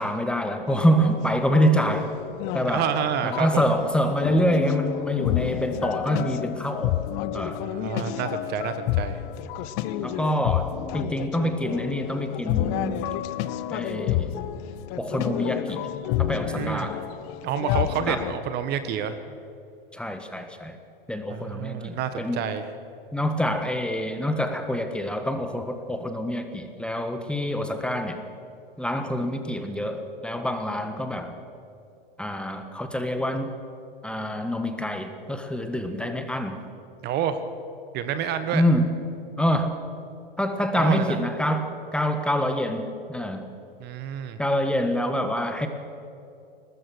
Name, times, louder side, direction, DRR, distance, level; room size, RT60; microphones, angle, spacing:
voice 1, 0.0-2.1 2.5-2.8 3.2-7.0 7.3-7.6 10.0-13.0 13.7-14.5 15.0-15.9 16.2-17.0 18.1-18.2 19.9-20.8 21.1-22.4 23.1-28.2 28.8-31.4 32.2-33.5 34.0-36.6 38.5-38.9 39.4-39.8 40.4-43.5 44.4-45.7, equal, 5° left, 7 dB, 1.6 m, -26 dB
sound 1, 0.7-18.4, left 12 dB, 40° left, 1.0 m, -30 dB
voice 2, 2.7-3.6 7.6-9.2 16.5-16.9 17.4-19.2 21.3-22.6 37.0-37.4 37.9-38.6 40.8-41.2 43.8-44.4, right 9 dB, 35° right, 11 dB, 1.4 m, -29 dB
23.0 x 19.5 x 6.3 m, 2.6 s
figure-of-eight pair, 100°, 29 cm